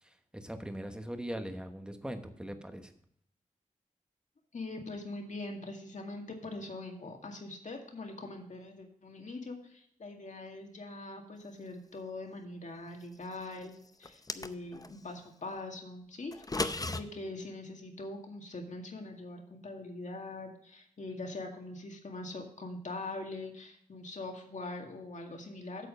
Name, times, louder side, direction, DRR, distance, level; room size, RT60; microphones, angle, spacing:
voice 1, 0.0-2.9, right 1 dB, 5° right, 7 dB, 1.1 m, -41 dB
voice 2, 4.5-13.7 14.0-16.3 16.6-25.9, left 2 dB, 65° left, 2 dB, 2.0 m, -42 dB
sound 1, 14.0-14.9 16.3-17.0, left 2 dB, 25° left, 0.6 m, -34 dB
8.5 x 7.7 x 5.2 m, 0.68 s
wide cardioid pair, 110°, 14 cm